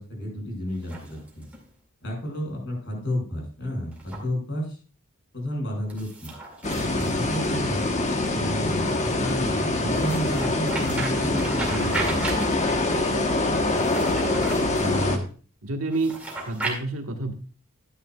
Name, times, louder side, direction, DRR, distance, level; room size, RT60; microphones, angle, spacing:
voice 1, 0.0-1.4 2.0-4.8 5.3-6.3 6.9-7.9 8.3-12.4, equal, 55° left, -1 dB, 5.6 m, -31 dB
sound 1, 0.7-1.7 3.9-4.2 5.9-7.8 9.9-12.8 13.7-14.9 15.9-16.8, right 3 dB, 5° right, 2.2 m, -35 dB
sound 2, 6.6-15.2, left 2 dB, 35° left, 1.1 m, -24 dB
voice 2, 14.8-15.3 15.6-16.2 16.5-17.3, right 2 dB, 75° right, 3 dB, 1.5 m, -28 dB
12.0 x 9.7 x 2.3 m, 0.39 s
head